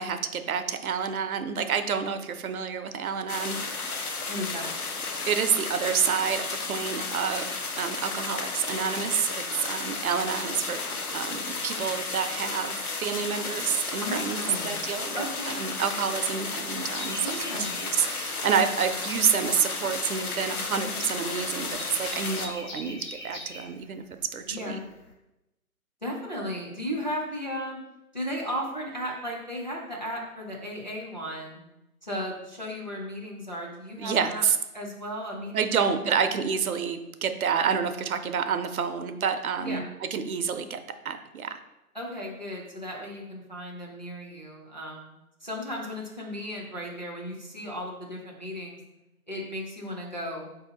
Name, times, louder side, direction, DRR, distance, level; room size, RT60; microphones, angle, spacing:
voice 1, 0.0-3.6 5.3-7.5 7.8-10.8 11.1-15.2 15.6-17.2 17.8-23.0 23.2-24.0 24.3-24.8 34.0-34.6 35.5-41.6, right 6 dB, 70° right, 8 dB, 0.5 m, -28 dB
sound 1, 3.3-22.5, left 4 dB, 75° left, 0.8 m, -33 dB
voice 2, 4.3-4.7 14.0-14.8 15.1-15.6 17.2-17.8 20.8-21.1 22.8-22.9 24.5-24.8 26.0-27.8 28.1-31.6 32.0-34.4 34.7-36.3 39.6-39.8 41.9-45.2 45.4-48.8 49.3-50.5, equal, 30° left, -4 dB, 0.5 m, -35 dB
sound 2, 16.9-25.1, left 1 dB, 55° left, 1.2 m, -42 dB
4.2 x 2.7 x 3.8 m, 0.94 s
hypercardioid pair, 165°, 45 cm